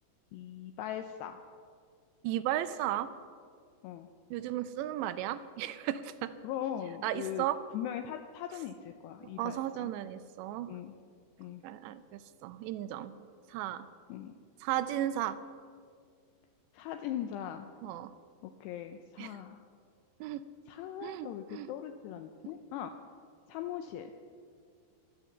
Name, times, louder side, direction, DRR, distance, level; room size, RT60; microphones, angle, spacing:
voice 1, 0.3-1.4 3.8-4.1 6.4-7.5 7.7-9.9 10.7-11.0 11.4-11.6 14.1-14.3 16.7-17.7 18.4-19.6 20.7-22.9 23.5-24.1, left 10 dB, 80° left, 6 dB, 2.6 m, -40 dB
voice 2, 2.2-3.1 4.3-6.3 7.0-7.6 9.4-10.7 11.6-13.1 13.5-13.9 14.6-15.4 17.8-18.1 19.2-19.4 20.2-20.4 21.0-21.7, right 13 dB, 85° right, 12 dB, 2.8 m, -35 dB
15.5 x 12.0 x 7.2 m, 2.1 s
omnidirectional pair, 5.1 m